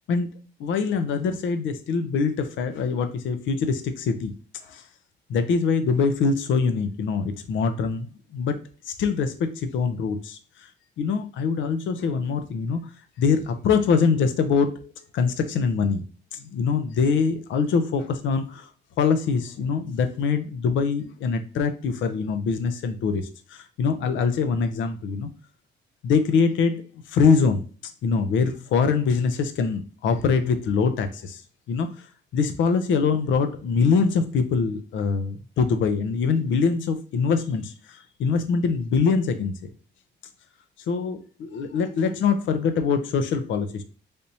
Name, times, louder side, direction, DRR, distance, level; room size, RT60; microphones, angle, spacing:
voice 1, 0.6-4.3 4.7-4.8 5.3-8.6 8.9-10.7 11.0-12.8 13.2-16.0 16.3-18.7 19.0-25.3 26.0-26.8 27.1-31.4 31.7-32.1 32.3-39.7 40.9-43.8, left 5 dB, 75° left, 9 dB, 0.6 m, -24 dB
3.4 x 2.7 x 2.7 m, 0.37 s
cardioid pair, 90°, 20 cm